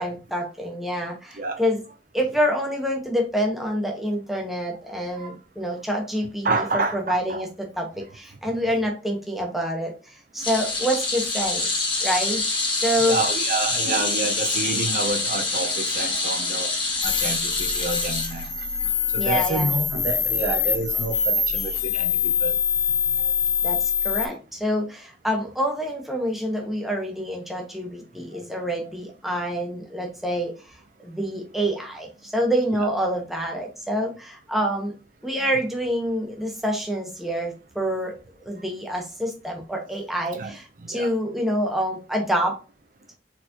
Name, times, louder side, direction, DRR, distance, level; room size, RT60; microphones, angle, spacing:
voice 1, 0.0-1.8 2.1-12.4 12.8-13.2 19.2-19.7 23.6-30.8 31.0-34.9 35.2-38.1 38.4-42.6, equal, ahead, 1.0 m, -27 dB
voice 2, 6.4-7.4 13.0-16.8 17.0-18.5 19.1-22.5 40.3-40.6 40.9-41.1, right 3 dB, 50° right, 0.6 m, -28 dB
sound 1, 10.4-18.9 19.2-19.4 20.6-20.7, left 3 dB, 30° left, 1.3 m, -26 dB
sound 2, 17.0-24.3, left 7 dB, 60° left, 1.4 m, -24 dB
4.3 x 4.0 x 2.9 m
head